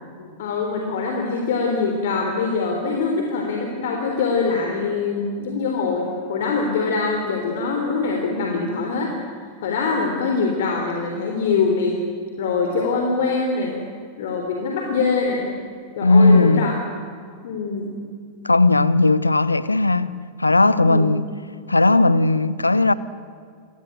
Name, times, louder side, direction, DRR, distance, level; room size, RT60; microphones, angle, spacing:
voice 1, 0.2-9.1 9.6-12.0 12.4-13.8 14.2-15.5 16.0-16.7 17.4-18.0 20.8-21.1, left 4 dB, 55° left, 3.6 m, -23 dB
voice 2, 16.0-16.7 18.4-21.2 21.7-22.9, left 2 dB, 80° left, 0.9 m, -17 dB
28.5 x 22.5 x 9.1 m
figure-of-eight pair, 90°, 0 cm